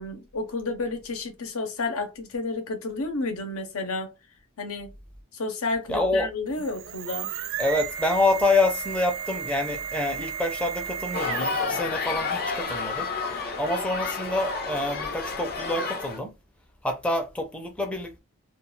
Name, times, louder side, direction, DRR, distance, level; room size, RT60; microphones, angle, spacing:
voice 1, 0.0-4.1 4.6-4.9 5.3-7.3, left 3 dB, 85° left, 0.7 m, -31 dB
voice 2, 5.9-6.3 7.6-13.1 13.6-16.3 16.8-18.2, left 2 dB, 5° left, 0.5 m, -27 dB
sound 1, 6.5-11.8, right 8 dB, 70° right, 0.4 m, -34 dB
sound 2, 11.1-16.2, left 4 dB, 45° left, 0.6 m, -30 dB
2.3 x 2.2 x 3.1 m
head